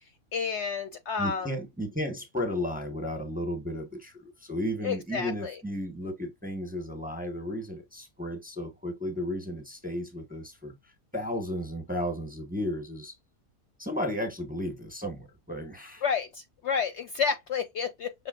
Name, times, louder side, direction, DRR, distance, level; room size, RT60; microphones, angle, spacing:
voice 1, 0.3-1.5 4.8-5.5 16.0-18.1, left 6 dB, 65° left, 0.8 m, -30 dB
voice 2, 1.2-13.1 13.8-16.0, equal, 5° right, 1.0 m, -34 dB
6.0 x 3.4 x 2.4 m
omnidirectional pair, 1.5 m